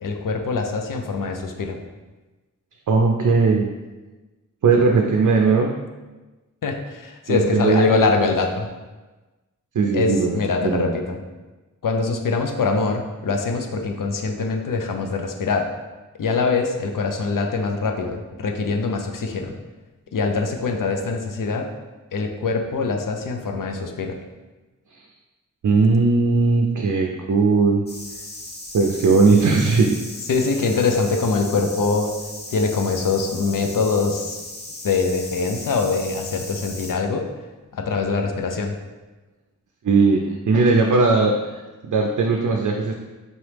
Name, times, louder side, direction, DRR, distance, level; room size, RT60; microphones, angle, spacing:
voice 1, 0.0-1.8 6.6-8.7 9.9-11.2 11.8-15.7 16.2-19.5 20.1-21.7 22.1-24.2 30.3-32.1 32.5-34.4 34.8-37.3 37.7-38.8, left 4 dB, 80° left, 3 dB, 0.5 m, -23 dB
voice 2, 2.9-3.7 4.6-5.8 7.3-7.9 9.7-10.9 24.9-25.0 25.6-27.9 28.7-30.0 39.8-42.9, right 4 dB, 65° right, 1 dB, 0.4 m, -18 dB
sound 1, 27.9-36.9, left 1 dB, 30° left, 0.7 m, -37 dB
4.0 x 3.0 x 3.3 m, 1.2 s
wide cardioid pair, 75°, 33 cm